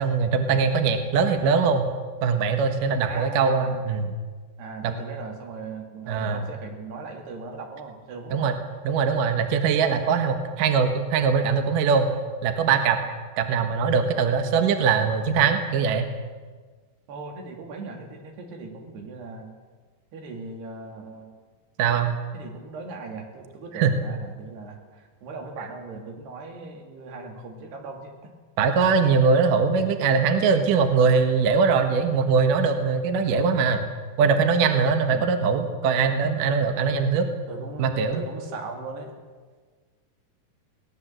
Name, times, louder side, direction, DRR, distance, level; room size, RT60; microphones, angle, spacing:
voice 1, 0.0-1.9 2.2-4.1 4.8-4.9 6.1-6.5 8.3-8.5 8.8-12.1 12.4-13.0 13.4-16.1 21.8-22.2 23.8-23.9 28.6-33.9 34.2-37.3 37.8-38.2, right 5 dB, 65° right, 6 dB, 2.8 m, -21 dB
voice 2, 3.0-3.9 4.6-8.5 13.4-13.6 17.1-19.5 20.1-21.3 22.3-28.3 35.1-35.4 37.5-39.1, right 3 dB, 90° right, 2 dB, 4.7 m, -38 dB
21.5 x 18.5 x 7.5 m, 1.4 s
omnidirectional pair, 4.6 m